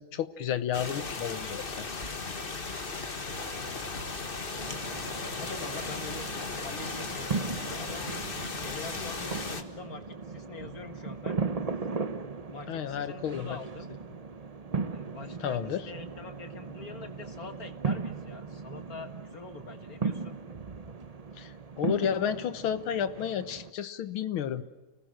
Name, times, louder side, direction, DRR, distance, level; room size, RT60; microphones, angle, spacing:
voice 1, 0.0-1.9 12.7-13.6 15.4-15.8 21.4-24.6, left 9 dB, 80° left, 12 dB, 1.9 m, -32 dB
sound 1, 0.7-9.6, left 3 dB, 30° left, 1.4 m, -36 dB
voice 2, 3.6-4.3 5.4-6.3 6.6-8.2 8.6-11.4 12.5-13.9 14.9-20.3, left 3 dB, 45° left, 8 dB, 1.9 m, -44 dB
sound 2, 4.6-23.7, right 4 dB, 90° right, 0.3 m, -37 dB
29.0 x 19.5 x 6.4 m, 1.1 s
omnidirectional pair, 2.3 m